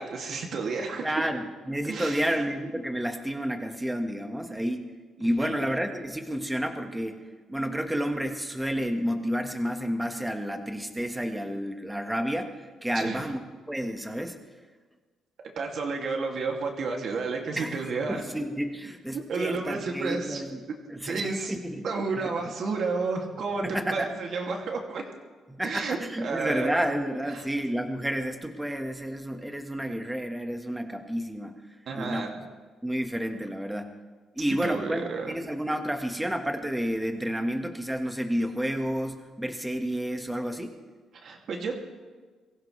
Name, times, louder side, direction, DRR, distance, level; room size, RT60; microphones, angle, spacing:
voice 1, 0.0-1.3 1.9-2.3 5.4-5.5 12.9-13.2 15.6-18.3 19.1-20.4 21.1-21.5 21.8-25.0 25.6-26.8 27.3-27.4 31.9-32.4 34.6-35.3 41.2-41.9, right 4 dB, 60° right, 1 dB, 2.7 m, -31 dB
voice 2, 1.0-4.8 5.2-7.2 7.5-12.5 12.8-13.4 13.7-14.4 17.6-20.6 20.9-21.9 23.6-24.1 25.5-31.6 31.9-32.3 32.8-33.9 34.3-40.7, equal, 5° right, 5 dB, 1.7 m, -30 dB
23.0 x 15.5 x 3.4 m, 1.4 s
cardioid pair, 90°, 0 cm